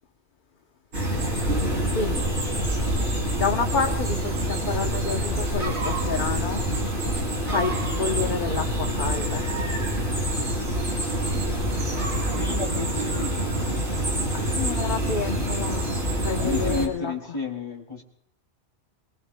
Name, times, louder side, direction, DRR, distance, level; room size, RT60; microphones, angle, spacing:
sound 1, 0.9-16.9, right 1 dB, 75° right, 3.5 m, -26 dB
voice 1, 1.9-2.2 3.4-6.6 7.5-9.5 14.3-17.1, left 5 dB, 45° left, 4 dB, 0.9 m, -29 dB
voice 2, 12.3-13.5 16.3-18.0, left 3 dB, 25° left, 1 dB, 2.8 m, -31 dB
26.0 x 22.0 x 2.2 m, 0.70 s
omnidirectional pair, 1.2 m